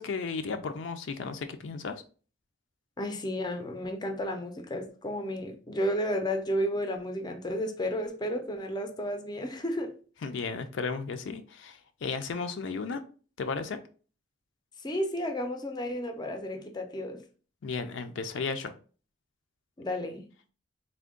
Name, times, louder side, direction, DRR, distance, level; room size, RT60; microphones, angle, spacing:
voice 1, 0.0-2.0 10.2-13.0 13.4-13.8 17.6-18.7, left 4 dB, 80° left, 0.4 m, -34 dB
voice 2, 3.0-10.0 14.8-17.2 19.8-20.3, equal, 20° left, 0.5 m, -32 dB
3.4 x 2.2 x 3.6 m
head